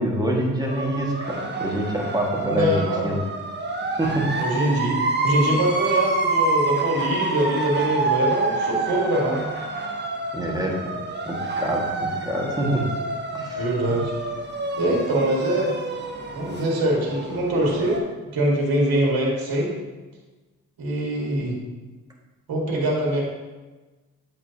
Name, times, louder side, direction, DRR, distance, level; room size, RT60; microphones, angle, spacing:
voice 1, 0.0-3.2 4.0-4.3 10.3-10.9 11.2-12.9 13.3-13.7, right 1 dB, 10° right, -1 dB, 1.8 m, -26 dB
sound 1, 0.6-18.0, right 2 dB, 25° right, 1.1 m, -28 dB
voice 2, 2.5-3.2 4.4-9.5 13.5-14.1 14.8-15.7 16.3-18.0 18.3-19.7 20.8-21.5 22.5-23.2, right 1 dB, 60° right, -2 dB, 1.9 m, -23 dB
7.9 x 4.9 x 2.8 m, 1.2 s
hypercardioid pair, 40°, 40 cm